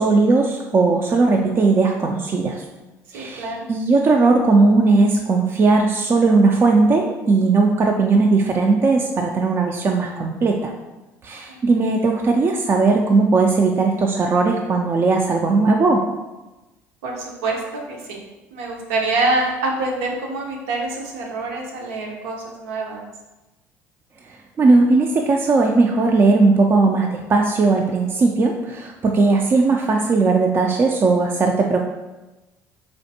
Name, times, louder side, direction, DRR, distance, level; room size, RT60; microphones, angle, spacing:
voice 1, 0.0-2.6 3.1-10.7 11.2-16.1 24.6-31.8, right 3 dB, 35° right, 1 dB, 0.4 m, -17 dB
voice 2, 3.1-3.7 11.5-11.8 17.0-18.2 18.5-23.0, right 2 dB, 85° right, 0 dB, 0.7 m, -26 dB
4.2 x 2.5 x 2.7 m, 1.1 s
supercardioid pair, 80°, 7 cm